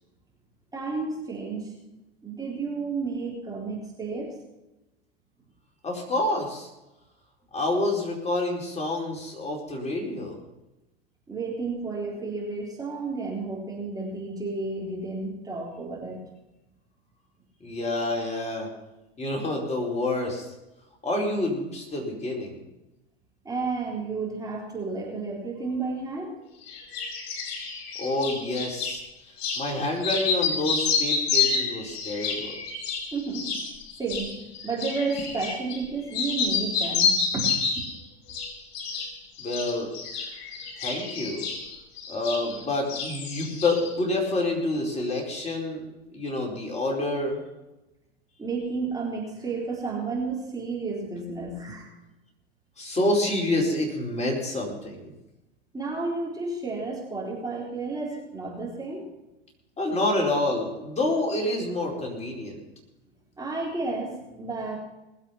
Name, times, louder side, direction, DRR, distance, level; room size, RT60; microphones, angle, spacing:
voice 1, 0.7-1.8 2.2-4.4 11.3-16.2 23.4-26.5 33.1-33.6 34.0-37.9 40.1-40.4 48.4-51.9 55.7-59.1 63.4-64.8, right 3 dB, 10° right, -3 dB, 3.9 m, -32 dB
voice 2, 5.8-6.7 7.5-10.4 17.6-18.7 19.2-20.5 21.0-22.6 28.0-29.0 29.6-32.6 39.4-39.9 40.8-41.4 42.1-45.8 46.1-47.4 52.8-55.1 59.8-62.6, left 2 dB, 20° left, -1 dB, 4.7 m, -28 dB
sound 1, 26.7-29.0 29.4-29.7 30.0-35.9 36.1-38.0 38.3-39.1 39.4-42.6 42.9-43.9, left 5 dB, 50° left, 4.6 m, -29 dB
20.5 x 8.1 x 5.9 m, 0.99 s
hypercardioid pair, 90°, 31 cm